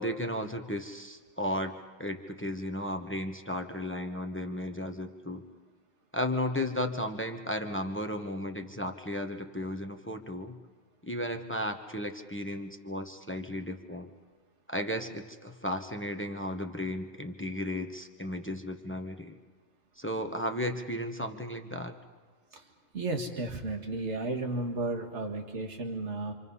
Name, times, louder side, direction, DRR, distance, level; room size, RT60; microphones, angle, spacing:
voice 1, 0.0-5.4 6.1-10.5 11.0-14.1 14.7-19.4 20.0-22.0, left 1 dB, 10° left, 5 dB, 1.1 m, -34 dB
voice 2, 22.9-26.3, right 2 dB, 60° right, 3 dB, 2.2 m, -33 dB
27.0 x 26.5 x 5.6 m, 1.4 s
omnidirectional pair, 1.3 m